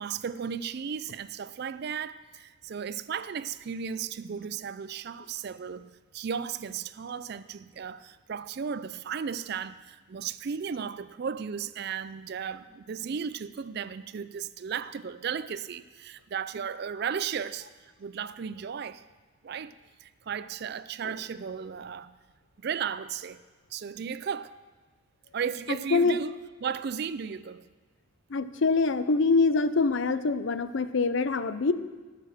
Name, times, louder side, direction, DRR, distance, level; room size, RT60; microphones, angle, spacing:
voice 1, 0.0-19.0 19.4-19.7 20.0-22.1 22.6-23.4 23.7-24.5 25.3-26.3 26.6-27.6, right 7 dB, 50° right, 0.3 m, -35 dB
voice 2, 28.3-31.7, left 4 dB, 60° left, 0.5 m, -24 dB
14.0 x 6.8 x 6.6 m
head